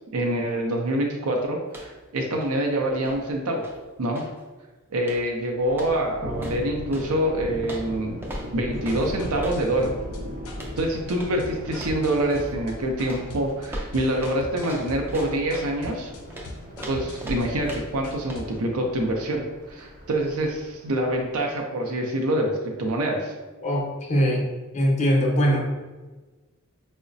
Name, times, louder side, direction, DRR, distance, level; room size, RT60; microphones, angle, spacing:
voice 1, 0.1-3.6 4.0-4.2 4.9-8.2 8.5-9.9 10.8-16.1 16.9-19.4 19.7-23.3, right 1 dB, 70° right, 1 dB, 0.5 m, -26 dB
sound 1, 1.6-2.1 2.3-4.4 5.0-5.4 5.7-7.1 7.6-9.7 10.5-10.8 11.1-11.4 11.7-12.6 13.1-15.8 16.3-18.0 18.3-18.5, right 1 dB, 10° right, 0.4 m, -39 dB
Thunder, 5.5-21.4, equal, 40° right, 0.8 m, -39 dB
sound 2, 8.7-18.7, left 1 dB, 80° left, 0.5 m, -40 dB
voice 2, 23.6-24.5 24.7-25.7, equal, 30° left, -1 dB, 0.6 m, -21 dB
4.7 x 2.1 x 2.5 m, 1.2 s
head